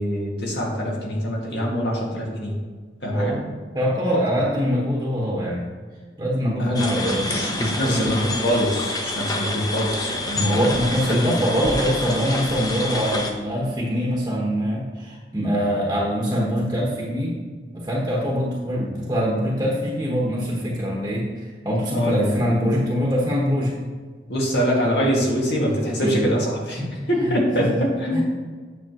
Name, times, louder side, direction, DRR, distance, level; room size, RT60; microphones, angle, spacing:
voice 1, 0.0-2.6 3.0-3.4 6.6-6.9 7.2-11.3 21.9-22.3 24.3-28.2, equal, 75° left, -2 dB, 2.0 m, -24 dB
voice 2, 3.7-5.7 6.2-8.1 10.4-17.4 17.7-23.7 26.0-26.2 26.8-26.9 27.2-27.8 28.1-28.2, equal, 20° right, -4 dB, 1.1 m, -23 dB
sound 1, 6.7-13.3, left 2 dB, 20° left, 0.7 m, -28 dB
9.1 x 6.9 x 3.0 m, 1.5 s
head